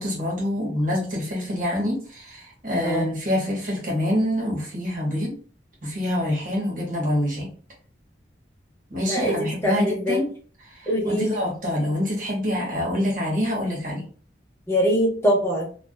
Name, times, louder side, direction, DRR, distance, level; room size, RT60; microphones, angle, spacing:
voice 1, 0.0-5.3 5.8-7.5 8.9-10.3 10.6-14.0, left 1 dB, 45° right, -2 dB, 1.1 m, -26 dB
voice 2, 9.6-10.2 10.9-11.2 14.7-15.7, equal, 15° left, -3 dB, 0.7 m, -22 dB
2.5 x 2.2 x 2.2 m, 0.41 s
head